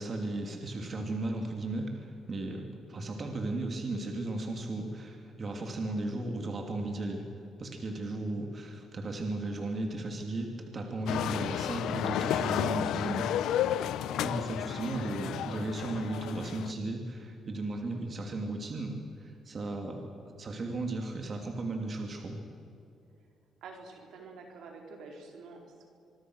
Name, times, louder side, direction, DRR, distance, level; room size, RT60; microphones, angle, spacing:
voice 1, 0.0-7.3 7.6-13.3 14.2-22.4, right 2 dB, 40° right, 3 dB, 2.9 m, -35 dB
sound 1, 11.1-16.7, left 10 dB, 80° left, 0.8 m, -32 dB
voice 2, 14.8-15.2 23.6-25.9, right 4 dB, 75° right, 2 dB, 4.5 m, -48 dB
25.5 x 22.5 x 6.4 m, 2.6 s
cardioid pair, 90°, 0 cm